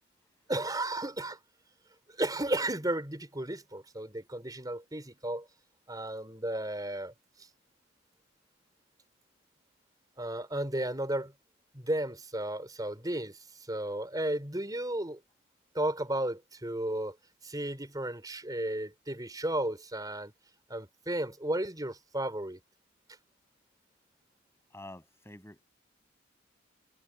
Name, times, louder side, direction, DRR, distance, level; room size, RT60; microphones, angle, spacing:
voice 1, 0.5-1.4 2.2-5.5 5.9-7.1 10.2-11.3 11.7-13.4 13.7-15.2 15.7-17.2 17.4-20.3 20.7-22.6, right 1 dB, 20° right, 4.9 m, -33 dB
voice 2, 24.7-25.6, left 1 dB, 15° left, 7.9 m, -48 dB
head